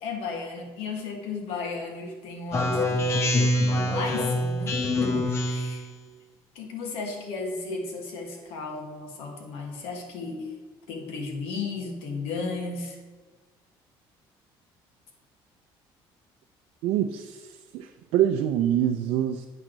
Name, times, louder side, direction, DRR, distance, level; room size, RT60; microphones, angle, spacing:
voice 1, 0.0-3.3 3.9-5.8 6.5-10.4 10.9-13.0, left 4 dB, 85° left, 2 dB, 1.4 m, -34 dB
Speech synthesizer, 2.5-5.9, left 1 dB, 30° left, 0.7 m, -25 dB
voice 2, 16.8-19.5, right 11 dB, 75° right, 6 dB, 0.4 m, -25 dB
8.3 x 3.8 x 6.1 m, 1.3 s
cardioid pair, 170°, 9 cm